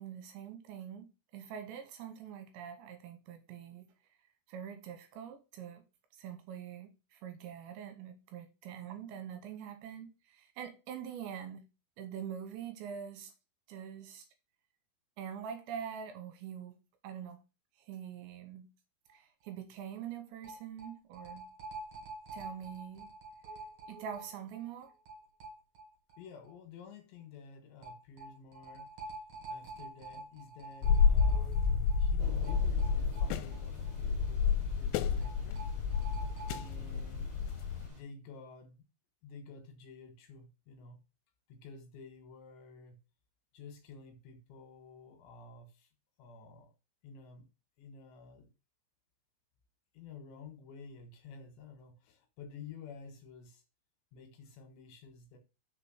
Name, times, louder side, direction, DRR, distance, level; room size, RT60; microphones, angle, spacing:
voice 1, 0.0-3.9 4.5-5.8 6.1-11.7 12.0-13.3 13.7-14.3 15.2-16.8 17.0-17.4 17.8-18.7 19.1-21.5 22.3-23.1 23.9-24.9, right 8 dB, 75° right, 3.0 m, -44 dB
sound 1, 19.1-19.2 19.4-19.5 20.4-26.2 26.5-26.6 27.8-33.9 34.2-34.3 35.2-36.7, right 2 dB, 45° right, 2.7 m, -47 dB
voice 2, 26.2-28.9 29.5-31.6 32.0-35.6 36.5-37.3 37.9-38.9 39.2-41.0 41.5-43.0 43.5-45.9 46.2-46.7 47.0-47.5 47.8-48.5 49.9-53.6 54.1-55.4, left 5 dB, 70° left, 3.5 m, -51 dB
sound 2, 30.8-37.9, left 6 dB, 90° left, 3.2 m, -30 dB
Thunder / Rain, 32.2-38.0, left 1 dB, 30° right, 0.7 m, -50 dB
6.6 x 4.9 x 6.4 m
omnidirectional pair, 5.7 m